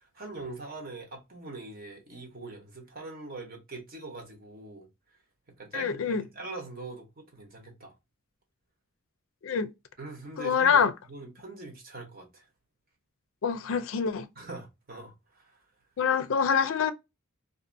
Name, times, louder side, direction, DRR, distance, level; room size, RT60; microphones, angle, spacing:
voice 1, 0.0-4.9 5.6-8.0 10.0-12.5 14.4-15.6, right 2 dB, 45° right, 0.9 m, -43 dB
voice 2, 5.7-6.2 9.4-9.7 10.4-10.9 13.4-14.2 16.0-16.9, left 6 dB, 65° left, 0.4 m, -25 dB
2.6 x 2.4 x 2.5 m
head